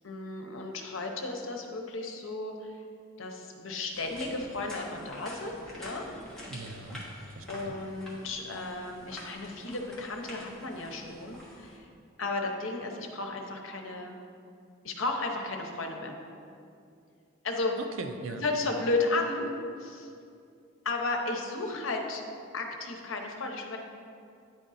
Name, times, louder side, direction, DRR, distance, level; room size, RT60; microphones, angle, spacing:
voice 1, 0.0-2.8 3.2-6.1 7.5-11.9 12.2-14.2 14.8-16.1 17.4-17.8 18.4-19.5 19.8-20.1 20.8-22.2 22.5-23.8, left 2 dB, 80° left, 2 dB, 0.8 m, -34 dB
sound 1, 3.9-11.8, equal, 5° left, 1.2 m, -47 dB
voice 2, 6.5-7.8 17.8-18.4, right 3 dB, 90° right, 7 dB, 0.5 m, -40 dB
9.5 x 3.7 x 4.1 m, 2.5 s
head